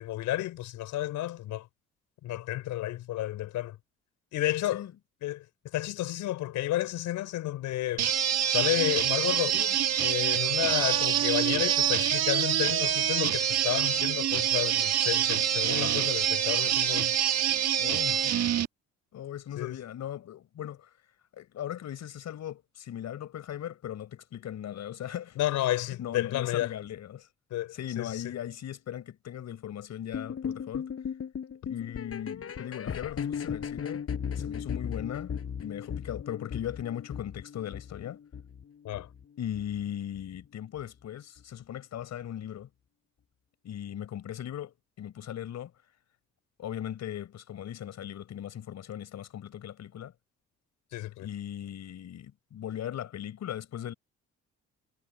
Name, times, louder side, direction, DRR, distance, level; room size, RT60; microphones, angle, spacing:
voice 1, 0.0-1.6 2.2-3.7 4.3-4.8 5.2-5.4 5.7-8.1 8.5-17.1 19.6-19.7 25.4-26.7 27.5-28.2 38.8-39.1 50.9-51.3, left 14 dB, 85° left, 4.3 m, -31 dB
sound 1, 8.0-18.7, right 10 dB, 60° right, 1.5 m, -26 dB
voice 2, 17.8-18.3 19.1-20.9 21.4-25.4 25.7-27.3 27.7-30.9 31.7-34.0 34.3-35.3 35.6-38.2 39.4-42.7 43.6-45.7 46.6-50.1 51.2-53.9, left 10 dB, 65° left, 5.0 m, -38 dB
sound 2, 30.1-39.2 39.5-39.8 40.1-40.2 40.8-40.9 41.4-41.5, left 7 dB, 50° left, 7.4 m, -37 dB
cardioid pair, 85°, 29 cm